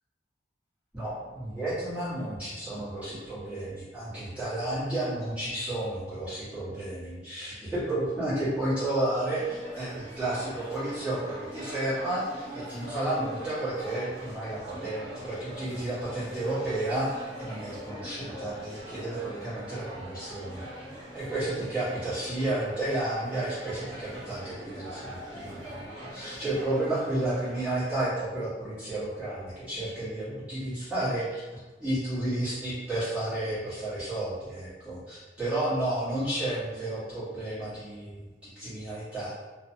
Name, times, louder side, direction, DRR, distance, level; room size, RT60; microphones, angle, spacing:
voice 1, 0.9-20.7 21.1-39.3, right 1 dB, 5° right, -15 dB, 1.2 m, -32 dB
sound 1, 9.4-28.1, right 1 dB, 15° left, 0.8 m, -43 dB
2.6 x 2.3 x 2.7 m, 1.2 s
head